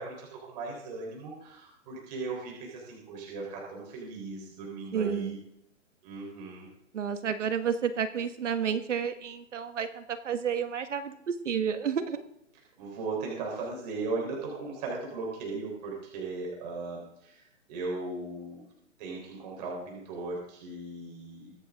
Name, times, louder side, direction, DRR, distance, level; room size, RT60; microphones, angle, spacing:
voice 1, 0.0-5.4 6.0-6.7 12.8-18.6 19.0-21.5, right 3 dB, 30° right, -2 dB, 4.0 m, -37 dB
voice 2, 4.9-5.4 6.9-12.2, right 7 dB, 70° right, 9 dB, 1.6 m, -31 dB
23.5 x 9.4 x 3.7 m, 0.77 s
hypercardioid pair, 165°, 39 cm